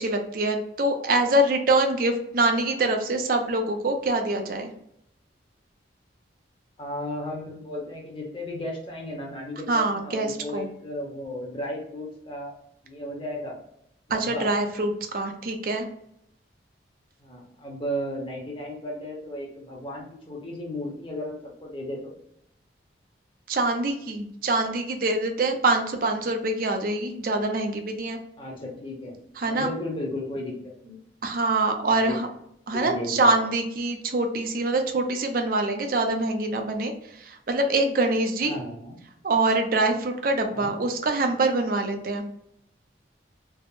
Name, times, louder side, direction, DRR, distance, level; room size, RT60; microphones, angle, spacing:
voice 1, 0.0-4.7 9.7-10.7 14.1-15.9 23.5-28.2 29.4-29.7 31.2-32.3 32.7-38.5 39.2-42.2, right 2 dB, 50° right, 5 dB, 0.4 m, -25 dB
voice 2, 6.8-12.5 12.8-13.6 14.1-14.5 17.2-22.1 28.4-29.2 29.4-31.0 31.9-32.2 32.7-33.4 38.4-39.0 40.5-40.7, left 1 dB, 25° left, -2 dB, 0.7 m, -34 dB
3.4 x 2.0 x 2.5 m, 0.75 s
head